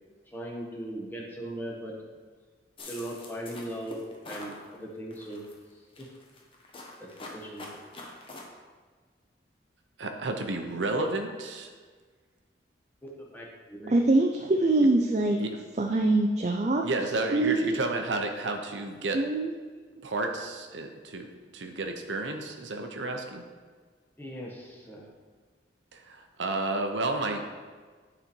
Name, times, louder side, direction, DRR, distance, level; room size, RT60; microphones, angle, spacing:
voice 1, 0.3-2.0 2.8-5.4 6.0-6.1 7.0-7.8 13.0-14.0 24.2-25.1, right 1 dB, 10° left, -3 dB, 1.2 m, -39 dB
sound 1, 2.8-4.6 5.1-5.5 5.9-8.4, left 2 dB, 30° left, 1.0 m, -44 dB
voice 2, 10.0-11.7 15.4-15.5 16.8-19.2 20.0-21.3 21.5-23.4 25.9-27.5, right 2 dB, 90° right, 4 dB, 0.8 m, -31 dB
voice 3, 13.9-15.4 15.8-16.8 17.3-17.7 19.1-19.5, right 2 dB, 40° right, 2 dB, 0.4 m, -23 dB
9.3 x 4.3 x 4.5 m, 1.5 s
head